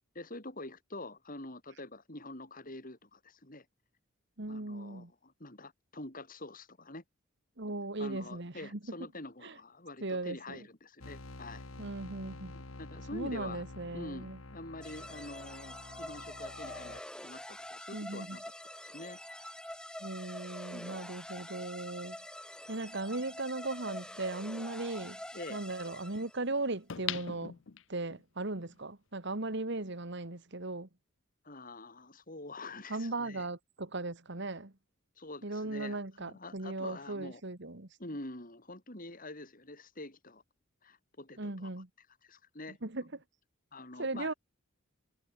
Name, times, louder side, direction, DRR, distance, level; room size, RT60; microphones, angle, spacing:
voice 1, 0.1-3.7 4.5-7.0 8.0-11.7 12.5-13.6 13.9-18.4 18.8-19.2 20.7-20.9 25.3-25.6 31.4-33.5 35.2-37.4 38.0-40.4 40.8-41.7 42.2-42.8 43.7-44.3, left 2 dB, 40° left, 6.2 m, -46 dB
voice 2, 4.4-5.1 7.6-8.8 9.4-9.6 10.0-10.6 11.8-12.6 13.1-14.4 17.9-18.4 20.0-22.2 22.7-25.2 25.5-27.6 27.9-30.9 32.9-34.7 35.4-37.9 41.4-41.9 42.8-43.1 44.0-44.3, right 2 dB, 60° right, 2.0 m, -37 dB
sound 1, 11.0-17.0, left 2 dB, 80° left, 2.0 m, -48 dB
sound 2, 14.8-26.5, left 1 dB, 5° left, 4.6 m, -46 dB
sound 3, 23.3-23.4 26.9-28.2 28.7-28.8, left 10 dB, 65° left, 0.7 m, -39 dB
head